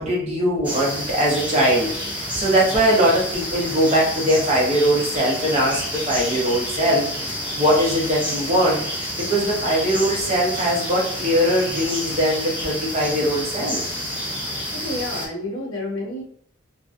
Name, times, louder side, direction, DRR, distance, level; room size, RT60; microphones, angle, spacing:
voice 1, 0.0-13.8, right 1 dB, 30° right, -4 dB, 0.9 m, -21 dB
sound 1, 0.6-15.3, equal, 5° right, 0.5 m, -29 dB
voice 2, 14.7-16.2, left 1 dB, 80° left, -1 dB, 0.9 m, -29 dB
2.8 x 2.5 x 2.4 m, 0.62 s
head